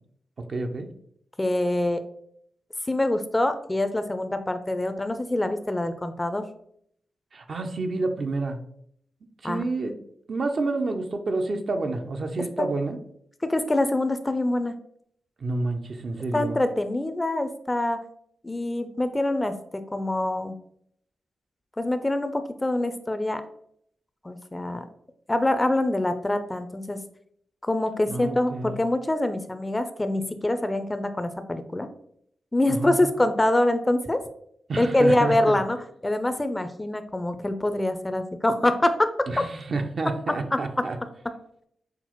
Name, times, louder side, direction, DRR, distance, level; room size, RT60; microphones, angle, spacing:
voice 1, 0.5-0.9 7.3-8.6 9.4-9.9 10.3-13.0 15.4-16.6 28.1-28.8 32.7-33.1 34.7-35.6 39.3-41.0, right 3 dB, 60° right, 5 dB, 0.5 m, -29 dB
voice 2, 1.4-2.0 2.9-6.4 9.4-9.6 12.6-12.7 13.4-14.8 16.3-18.0 18.4-20.5 21.8-23.4 24.2-24.9 25.3-27.0 27.6-31.9 32.5-34.2 34.8-35.8 36.0-39.3, left 1 dB, 20° left, 10 dB, 0.4 m, -25 dB
5.8 x 2.0 x 2.9 m, 0.70 s
supercardioid pair, 45°, 0 cm